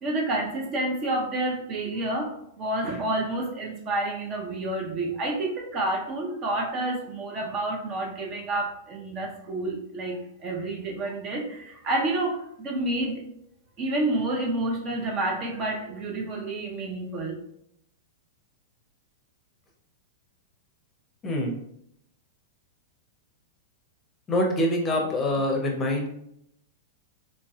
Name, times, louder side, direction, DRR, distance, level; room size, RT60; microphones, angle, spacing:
voice 1, 0.0-13.3 13.8-17.3, right 2 dB, 35° right, 1 dB, 0.7 m, -29 dB
voice 2, 21.2-21.5 24.3-26.1, left 1 dB, 25° left, 1 dB, 0.7 m, -25 dB
3.2 x 2.6 x 2.3 m, 0.74 s
hypercardioid pair, 115°, 0 cm